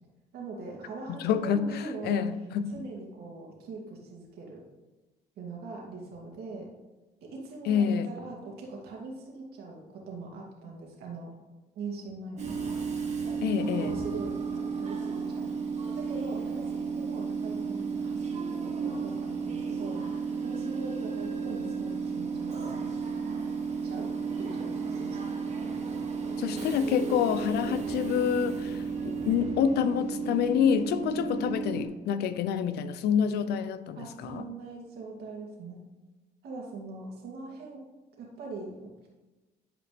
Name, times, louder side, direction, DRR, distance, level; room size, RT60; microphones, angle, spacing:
voice 1, 0.3-2.2 2.7-4.6 5.4-6.7 7.2-11.3 11.8-12.6 13.2-15.5 15.9-22.9 23.8-24.1 24.4-25.2 34.0-35.8 36.4-37.8 38.2-39.1, right 3 dB, 70° right, -2 dB, 2.4 m, -42 dB
voice 2, 1.1-2.7 7.7-8.1 13.4-13.9 26.4-34.4, left 8 dB, 75° left, 12 dB, 0.6 m, -27 dB
Train / Subway metro underground, 12.4-31.9, right 5 dB, 40° right, 1.7 m, -33 dB
11.0 x 5.0 x 3.3 m, 1.1 s
cardioid pair, 110°, 17 cm